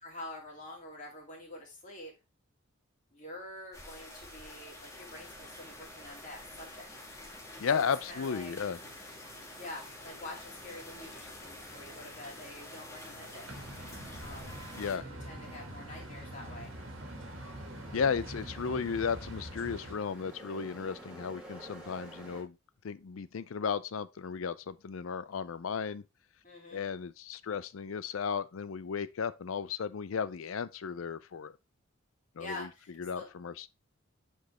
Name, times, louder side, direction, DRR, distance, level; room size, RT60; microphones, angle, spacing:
voice 1, 0.0-2.1 3.1-6.9 7.7-8.5 9.6-13.5 14.2-16.7 26.4-26.8 32.4-33.3, left 1 dB, 40° left, 2.5 m, -46 dB
sound 1, 3.7-15.0, left 1 dB, 15° left, 1.6 m, -48 dB
sound 2, 5.0-22.4, right 1 dB, 5° right, 2.0 m, -53 dB
voice 2, 7.6-8.8 14.7-15.0 17.9-22.6 22.8-26.0 26.7-31.5 32.4-32.7 33.0-33.7, left 6 dB, 80° left, 0.5 m, -34 dB
sound 3, 13.5-19.9, right 1 dB, 70° right, 1.7 m, -44 dB
7.7 x 4.5 x 3.2 m
head